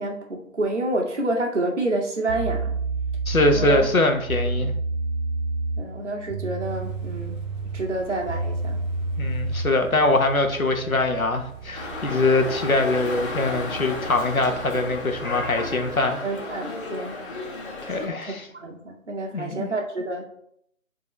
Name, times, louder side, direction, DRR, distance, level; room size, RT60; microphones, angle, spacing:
voice 1, 0.0-2.7 3.5-3.8 5.8-7.3 7.7-8.8 16.2-17.1 18.5-20.2, right 2 dB, 60° right, 1 dB, 2.2 m, -28 dB
sound 1, 1.8-1.9 2.3-9.8, right 3 dB, 45° right, 3.0 m, -29 dB
voice 2, 3.2-4.7 9.2-16.2 17.8-18.4 19.3-19.7, left 2 dB, 85° left, 4 dB, 1.6 m, -23 dB
sound 2, 6.6-16.1, right 7 dB, 20° right, 2.4 m, -41 dB
Dog, 11.7-18.1, left 3 dB, 35° left, 2.2 m, -33 dB
9.8 x 4.6 x 3.3 m, 0.70 s
figure-of-eight pair, 155°, 41 cm